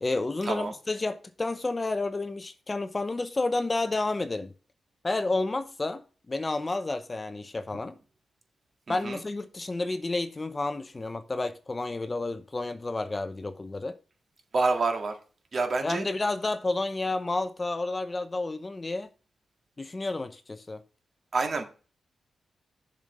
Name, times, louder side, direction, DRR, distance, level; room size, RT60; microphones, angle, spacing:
voice 1, 0.0-4.5 5.0-6.0 6.3-8.0 8.9-13.9 15.8-19.1 19.8-20.8, left 2 dB, 25° left, 0.7 m, -30 dB
voice 2, 8.9-9.2 14.5-15.1 15.5-16.1 21.3-21.6, right 3 dB, 45° right, 1.9 m, -27 dB
7.2 x 5.2 x 6.6 m
wide cardioid pair, 110°, 0 cm